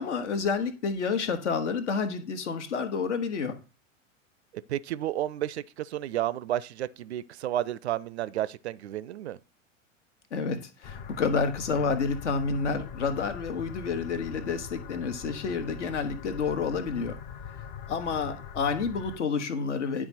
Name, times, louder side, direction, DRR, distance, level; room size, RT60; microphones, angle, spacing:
voice 1, 0.0-3.6 10.3-17.2 17.9-20.1, left 5 dB, 65° left, 1.2 m, -29 dB
voice 2, 4.5-9.4, right 12 dB, 60° right, 0.4 m, -32 dB
sound 1, 10.8-19.2, left 7 dB, 25° left, 0.4 m, -42 dB
9.8 x 3.7 x 4.3 m
figure-of-eight pair, 95°, 39 cm